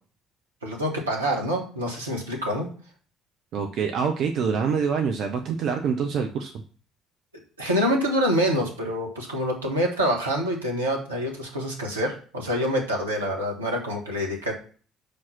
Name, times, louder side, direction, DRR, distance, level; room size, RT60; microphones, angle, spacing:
voice 1, 0.6-2.7 7.6-14.5, equal, 80° right, 0 dB, 1.5 m, -26 dB
voice 2, 3.5-6.5, right 6 dB, 50° right, 5 dB, 0.7 m, -25 dB
5.7 x 5.1 x 5.9 m, 0.41 s
figure-of-eight pair, 50°, 0 cm